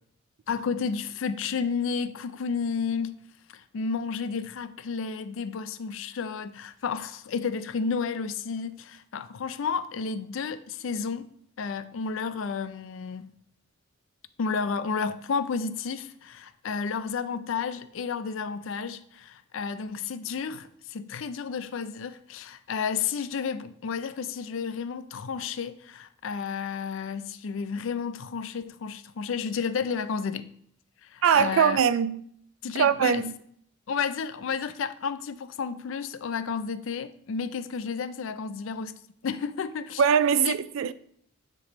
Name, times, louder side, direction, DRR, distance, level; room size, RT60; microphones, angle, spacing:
voice 1, 0.5-3.2 3.5-11.3 11.6-13.3 14.4-30.5 31.0-31.8 32.6-33.3 33.9-40.0 40.4-40.6, left 5 dB, 70° left, 0.4 m, -32 dB
voice 2, 31.2-32.2 32.8-33.3 40.0-40.9, right 7 dB, 75° right, 0.3 m, -22 dB
9.6 x 3.4 x 3.0 m
head